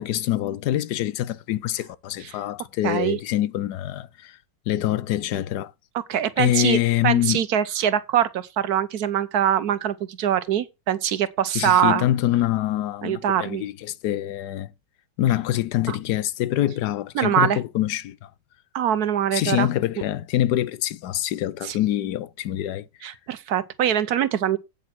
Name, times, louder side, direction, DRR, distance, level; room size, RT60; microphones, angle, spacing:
voice 1, 0.0-4.4 4.7-5.7 6.4-7.4 11.5-14.7 15.2-18.3 19.3-22.8, left 13 dB, 75° left, 1.2 m, -25 dB
voice 2, 2.8-3.2 6.1-12.1 13.0-13.7 15.9-16.0 17.1-17.6 18.7-19.7 21.6-21.8 23.0-24.6, right 10 dB, 65° right, 1.3 m, -23 dB
8.7 x 7.9 x 4.4 m
omnidirectional pair, 1.8 m